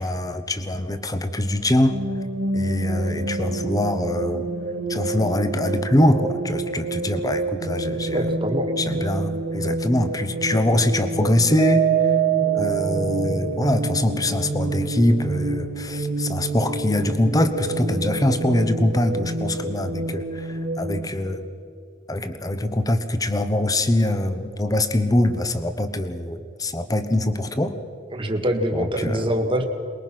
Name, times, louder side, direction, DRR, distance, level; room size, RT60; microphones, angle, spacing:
voice 1, 0.0-2.0 2.5-4.5 4.9-8.3 8.8-11.9 12.5-21.5 22.1-27.7 28.7-29.3, left 1 dB, 20° left, 10 dB, 1.0 m, -23 dB
sound 1, 1.9-21.1, right 2 dB, 65° right, 1.6 m, -28 dB
voice 2, 8.1-8.7 28.1-29.6, equal, 25° right, 4 dB, 1.7 m, -24 dB
Mallet percussion, 11.6-13.9, right 12 dB, 10° right, 1.2 m, -23 dB
23.0 x 21.0 x 6.0 m, 2.6 s
head